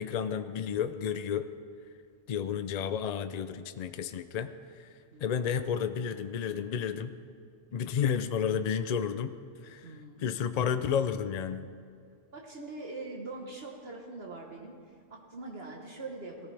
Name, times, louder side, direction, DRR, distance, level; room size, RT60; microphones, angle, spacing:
voice 1, 0.0-1.4 2.3-4.9 5.2-7.1 7.7-9.3 9.6-9.9 10.2-11.7, left 7 dB, 70° left, 10 dB, 0.4 m, -31 dB
voice 2, 5.1-5.5 9.8-10.3 12.3-16.5, right 3 dB, 55° right, 0 dB, 1.4 m, -43 dB
18.5 x 14.0 x 3.3 m, 2.2 s
omnidirectional pair, 1.3 m